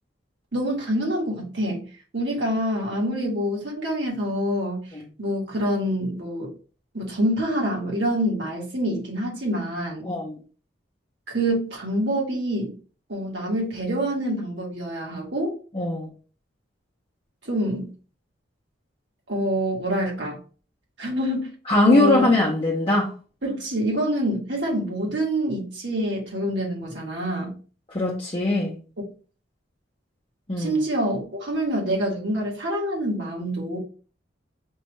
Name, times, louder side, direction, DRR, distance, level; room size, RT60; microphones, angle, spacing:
voice 1, 0.5-1.8 2.1-4.9 5.2-6.5 6.9-10.1 11.3-12.7 13.1-15.6 17.4-17.9 19.3-20.4 21.0-21.5 21.9-22.3 23.4-27.5 30.6-33.8, equal, 65° right, 1.5 m, -26 dB
voice 2, 10.0-10.4 15.7-16.1 21.7-23.1 27.9-28.8 30.5-30.8, left 2 dB, 30° left, 0.7 m, -21 dB
5.3 x 2.4 x 3.0 m
head